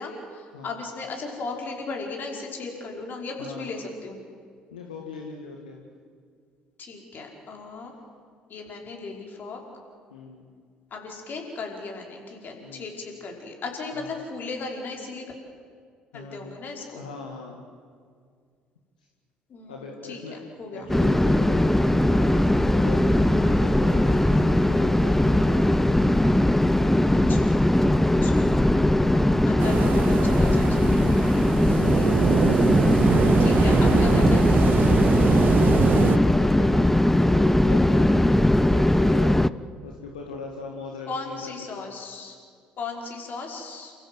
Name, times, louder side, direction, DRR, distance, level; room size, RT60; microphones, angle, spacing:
voice 1, 0.0-4.2 6.8-7.9 8.5-9.6 10.9-15.2 16.1-17.0 19.5-20.2 20.6-20.9 27.1-27.6 28.2-31.4 31.9-32.2 33.4-34.5 41.1-42.3 42.8-43.9, left 4 dB, 50° left, 1 dB, 5.3 m, -36 dB
voice 2, 3.4-3.8 4.7-5.8 10.1-10.5 12.6-13.0 13.9-14.2 16.1-16.6 16.9-17.6 19.7-20.4 20.7-25.9 35.9-39.4 39.8-41.9, left 4 dB, 85° left, 0 dB, 1.9 m, -39 dB
Musical instrument, 20.8-37.9, right 6 dB, 70° right, 3.6 m, -42 dB
sound 1, 20.9-39.5, left 1 dB, 5° left, 0.6 m, -20 dB
sound 2, 29.6-36.2, right 9 dB, 50° right, 0.6 m, -24 dB
29.0 x 15.5 x 8.0 m, 2.1 s
hypercardioid pair, 55°, 4 cm